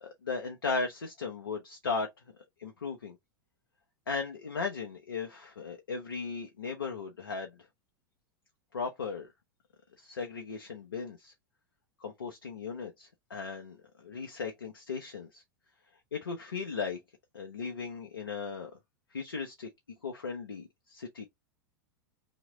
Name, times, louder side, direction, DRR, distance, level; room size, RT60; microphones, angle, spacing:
voice 1, 0.0-2.1 2.6-3.2 4.1-7.5 8.7-9.3 10.0-11.3 12.0-15.4 16.1-17.0 17.3-18.7 19.1-19.7 20.0-21.3, left 4 dB, 85° left, 0.9 m, -37 dB
3.1 x 3.0 x 3.9 m
hypercardioid pair, 95°, 11 cm